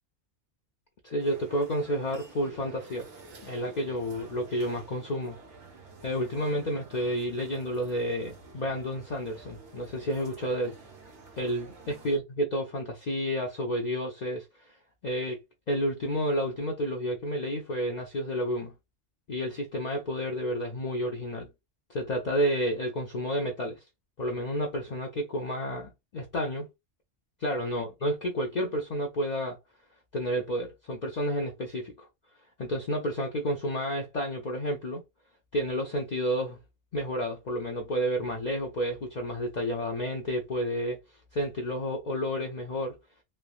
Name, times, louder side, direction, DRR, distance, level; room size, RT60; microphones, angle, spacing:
voice 1, 1.0-3.1 3.4-5.4 6.0-10.8 11.4-14.7 15.0-15.4 15.7-18.7 19.3-21.5 21.9-23.8 24.2-26.7 27.4-29.6 30.1-32.1 32.6-35.0 35.5-36.6 36.9-41.0 41.3-43.0, equal, 50° left, 0.5 m, -30 dB
sound 1, 1.2-12.2, right 3 dB, 85° right, 1.2 m, -50 dB
3.2 x 2.1 x 2.4 m
omnidirectional pair, 1.2 m